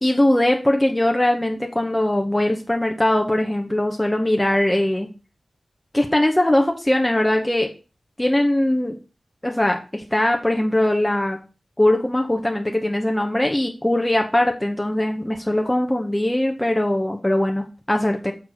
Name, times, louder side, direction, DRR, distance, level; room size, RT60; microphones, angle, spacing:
voice 1, 0.0-5.1 5.9-7.7 8.2-9.0 9.4-11.4 11.8-18.3, left 1 dB, 15° left, 2 dB, 0.9 m, -20 dB
6.1 x 4.5 x 4.9 m, 0.34 s
cardioid pair, 45°, 0 cm